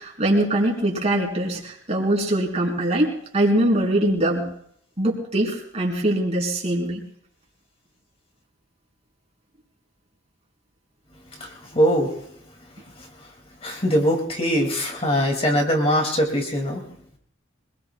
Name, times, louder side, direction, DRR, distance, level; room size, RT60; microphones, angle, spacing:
voice 1, 0.0-4.4 5.0-7.0, right 1 dB, 35° right, -2 dB, 4.0 m, -22 dB
voice 2, 11.4-12.1 13.6-16.8, equal, 30° left, 2 dB, 2.5 m, -22 dB
26.0 x 20.5 x 2.4 m, 0.68 s
head